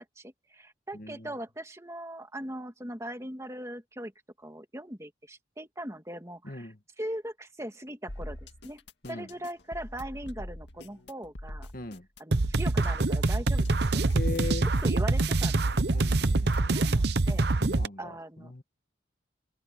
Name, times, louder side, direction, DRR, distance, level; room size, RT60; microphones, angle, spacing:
voice 1, 0.0-4.1 4.4-8.8 9.1-11.7 12.2-14.0 14.6-15.7 16.7-17.5 18.0-18.5, right 1 dB, 15° right, 2.5 m, -40 dB
voice 2, 0.9-1.3 6.4-6.8 9.0-9.3 11.7-12.1 14.1-14.7 15.9-16.8 17.6-18.6, left 3 dB, 50° left, 2.0 m, -38 dB
sound 1, 8.1-16.8, left 1 dB, 65° left, 2.2 m, -43 dB
sound 2, 12.3-17.9, right 2 dB, 60° right, 0.9 m, -25 dB
head